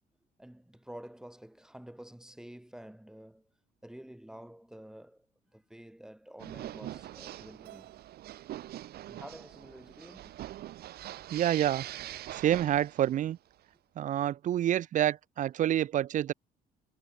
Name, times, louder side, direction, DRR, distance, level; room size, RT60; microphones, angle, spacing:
voice 1, 0.4-3.5 3.8-5.3 5.5-8.0 9.0-10.4, right 1 dB, 5° right, 5.1 m, -49 dB
sound 1, 6.4-13.3, right 13 dB, 70° right, 2.3 m, -43 dB
Keyboard (musical), 7.6-10.0, right 18 dB, 85° right, 3.1 m, -60 dB
voice 2, 11.3-11.9 12.3-13.4 14.0-16.3, right 11 dB, 50° right, 0.5 m, -28 dB
cardioid pair, 110°, 17 cm